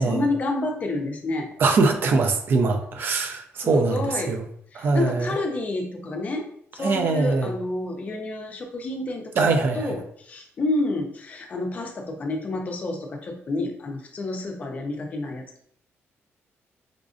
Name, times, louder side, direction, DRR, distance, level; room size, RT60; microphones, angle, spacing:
voice 1, 0.0-1.5 3.6-4.3 4.7-6.5 6.7-15.6, left 2 dB, 35° left, 3 dB, 0.5 m, -29 dB
voice 2, 1.6-4.4 4.8-5.3 6.8-7.5 9.4-9.9, right 3 dB, 45° right, 5 dB, 0.4 m, -22 dB
4.9 x 2.5 x 2.4 m, 0.66 s
cardioid pair, 175°, 5 cm